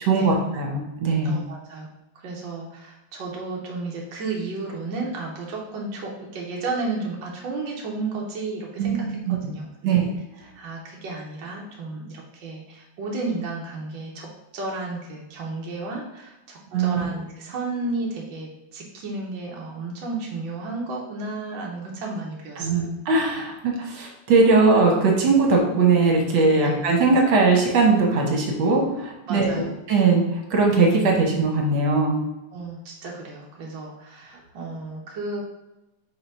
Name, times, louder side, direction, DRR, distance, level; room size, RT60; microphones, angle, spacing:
voice 1, 0.0-1.4 8.8-8.9 9.3-9.4 9.8-10.1 16.7-17.0 22.6-29.5 29.9-32.2, right 3 dB, 55° right, 0 dB, 1.6 m, -20 dB
voice 2, 1.2-1.9 2.1-10.1 10.4-22.9 26.6-26.8 29.3-29.7 32.5-35.4, right 3 dB, 70° right, -2 dB, 1.1 m, -33 dB
4.6 x 3.9 x 5.5 m, 0.96 s
omnidirectional pair, 3.4 m